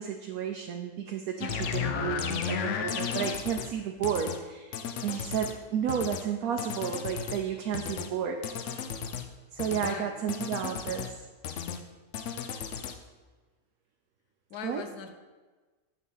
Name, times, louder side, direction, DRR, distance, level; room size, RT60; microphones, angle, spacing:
voice 1, 0.0-8.4 9.5-11.3 14.6-14.8, right 8 dB, 75° right, 3 dB, 1.2 m, -32 dB
sound 1, 1.4-3.7 4.0-4.4 4.7-5.5 5.9-6.2 6.6-7.4 7.7-8.1 8.4-9.3 9.6-9.9 10.3-11.1 11.4-11.8 12.1-12.9, left 7 dB, 60° left, 0.9 m, -34 dB
voice 2, 9.8-10.2 14.5-15.2, left 6 dB, 80° left, 8 dB, 1.2 m, -40 dB
9.7 x 4.1 x 7.2 m, 1.3 s
omnidirectional pair, 1.6 m